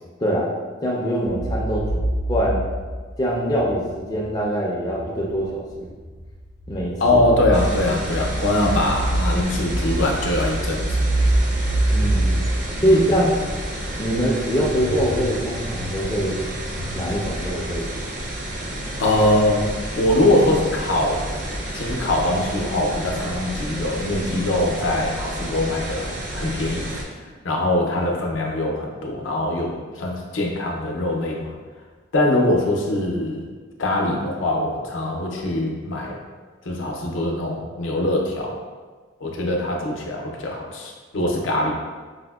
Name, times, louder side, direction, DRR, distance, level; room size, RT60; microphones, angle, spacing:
voice 1, 0.2-0.5 0.8-2.0 2.3-2.6 3.2-5.9 6.7-7.2 11.9-12.5 12.8-13.4 14.0-16.4 16.9-17.9, equal, 20° left, -4 dB, 0.3 m, -23 dB
sound 1, 1.2-4.3 4.8-17.9, right 1 dB, 90° right, 0.8 m, -26 dB
voice 2, 7.0-11.0 12.9-13.0 19.0-21.3 21.7-31.5 32.1-33.5 33.8-36.2 36.6-38.5 39.2-41.7, left 1 dB, 75° left, 0 dB, 0.5 m, -22 dB
sound 2, 7.5-27.0, right 1 dB, 40° right, 0.4 m, -31 dB
4.8 x 2.0 x 2.2 m, 1.4 s
head